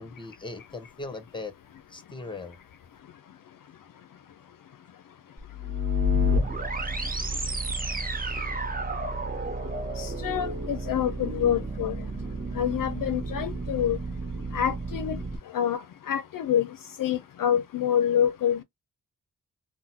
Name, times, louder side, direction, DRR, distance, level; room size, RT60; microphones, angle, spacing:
voice 1, 0.0-1.5 1.9-2.6, left 3 dB, 15° left, 1.1 m, -39 dB
sound 1, 5.4-15.4, left 1 dB, 25° right, 0.9 m, -30 dB
voice 2, 10.0-11.9 12.6-14.0 14.5-15.2 15.5-15.8 16.1-16.7 17.0-18.6, left 9 dB, 60° left, 0.5 m, -26 dB
3.7 x 2.1 x 2.7 m
cardioid pair, 45°, 36 cm